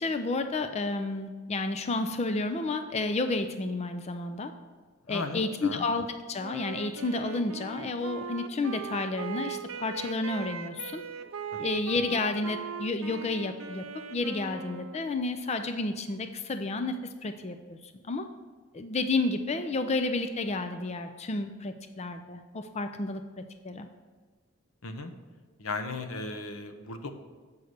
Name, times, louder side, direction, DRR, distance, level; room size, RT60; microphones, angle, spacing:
voice 1, 0.0-4.5 5.1-11.0 11.6-13.9 14.1-17.0 17.2-18.3 18.7-23.9, left 3 dB, 30° left, 8 dB, 0.4 m, -31 dB
voice 2, 5.1-5.9 11.5-11.6 24.8-25.1 25.6-27.1, left 3 dB, 85° left, 7 dB, 0.8 m, -36 dB
Wind instrument woodwind instrument, 6.4-15.2, right 6 dB, 75° right, 0.6 m, -40 dB
7.9 x 5.5 x 6.5 m, 1.4 s
head